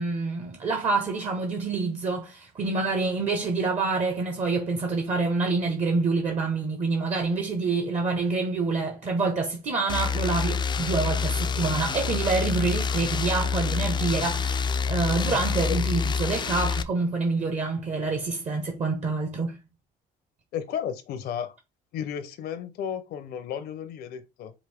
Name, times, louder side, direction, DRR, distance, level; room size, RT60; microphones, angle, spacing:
voice 1, 0.0-19.6, right 3 dB, 40° right, 1.1 m, -27 dB
sound 1, 9.9-16.8, left 5 dB, 25° left, 0.4 m, -27 dB
voice 2, 20.5-21.6 21.9-24.5, left 8 dB, 70° left, 0.7 m, -33 dB
5.0 x 2.6 x 3.5 m
cardioid pair, 110°, 17 cm